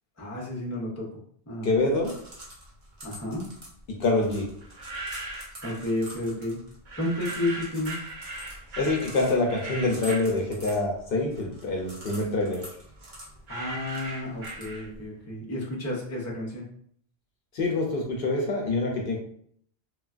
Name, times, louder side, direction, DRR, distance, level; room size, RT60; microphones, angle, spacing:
voice 1, 0.2-1.1 1.5-1.7 3.0-3.4 5.6-6.6 7.0-8.0 13.5-16.6, left 1 dB, 20° left, -2 dB, 0.6 m, -31 dB
voice 2, 1.6-2.2 3.9-4.5 8.8-12.7 17.5-19.2, left 2 dB, 65° left, 0 dB, 0.7 m, -26 dB
sound 1, 1.8-15.1, equal, 35° right, 0.9 m, -47 dB
sound 2, 4.6-5.9 6.9-11.1 11.5-15.2, right 2 dB, 55° right, 0.7 m, -39 dB
3.2 x 2.2 x 2.4 m, 0.63 s
omnidirectional pair, 1.1 m